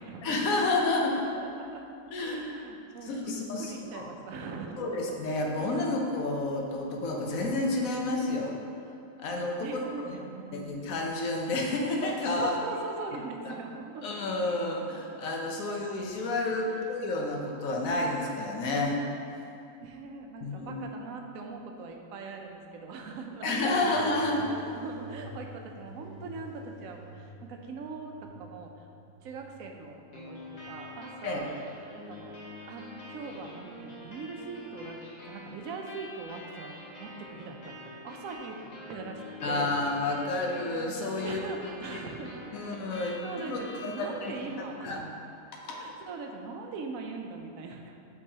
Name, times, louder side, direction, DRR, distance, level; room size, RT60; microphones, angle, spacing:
voice 1, 0.2-1.1 2.1-2.4 3.0-4.1 4.8-8.5 9.2-10.2 10.5-12.5 13.5-13.6 14.0-19.0 20.4-20.8 23.4-24.4 31.2-31.4 39.4-41.4 41.8-42.0 42.5-43.1 43.5-44.5 44.8-45.0 45.7-45.9, left 2 dB, 80° left, 0 dB, 1.2 m, -30 dB
voice 2, 1.2-1.8 2.2-4.9 9.6-10.7 12.3-14.0 16.7-16.8 19.8-24.1 24.4-28.9 29.2-31.5 32.0-32.4 32.7-35.0 35.2-36.7 37.0-37.7 38.0-38.6 38.9-39.7 41.2-42.5 42.9-45.0 45.7-48.0, right 4 dB, 80° right, 3 dB, 1.1 m, -41 dB
sound 1, 23.7-31.0 31.5-32.3 33.0-33.5 34.5-34.6, equal, 40° right, 1.0 m, -49 dB
sound 2, 30.1-45.1, left 1 dB, 35° left, 0.9 m, -46 dB
8.4 x 4.5 x 2.8 m, 2.6 s
omnidirectional pair, 1.4 m